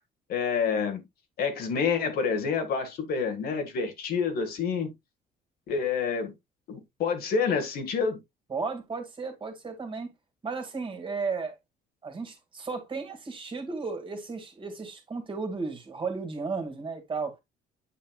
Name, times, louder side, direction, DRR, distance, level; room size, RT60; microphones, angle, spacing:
voice 1, 0.3-1.0 1.4-4.9 5.7-6.3 6.7-8.2, left 5 dB, 65° left, 1.8 m, -28 dB
voice 2, 8.5-10.1 10.4-11.5 12.0-17.4, right 4 dB, 30° right, 2.2 m, -34 dB
8.5 x 5.8 x 2.3 m
cardioid pair, 110°, 17 cm